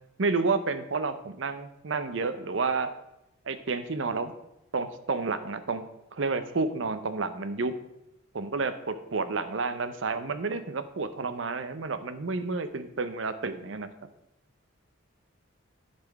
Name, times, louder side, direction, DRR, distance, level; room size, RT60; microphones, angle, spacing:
voice 1, 0.2-2.9 3.5-4.3 4.7-7.8 8.3-13.9, right 4 dB, 70° right, 11 dB, 0.7 m, -30 dB
10.5 x 4.3 x 4.7 m, 0.88 s
head